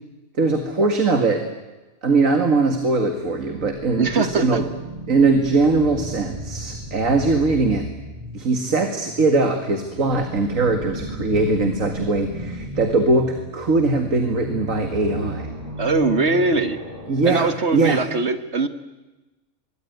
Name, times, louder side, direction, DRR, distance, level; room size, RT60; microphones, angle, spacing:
voice 1, 0.4-1.4 2.0-4.7 5.1-7.9 8.3-15.5 17.1-18.0, right 3 dB, 75° right, 6 dB, 2.4 m, -20 dB
sound 1, 3.1-17.1, equal, 30° right, 5.3 m, -35 dB
voice 2, 4.0-4.6 15.8-16.8 17.2-18.7, right 3 dB, 55° right, 10 dB, 1.6 m, -21 dB
25.0 x 22.5 x 9.4 m, 1.1 s
omnidirectional pair, 1.4 m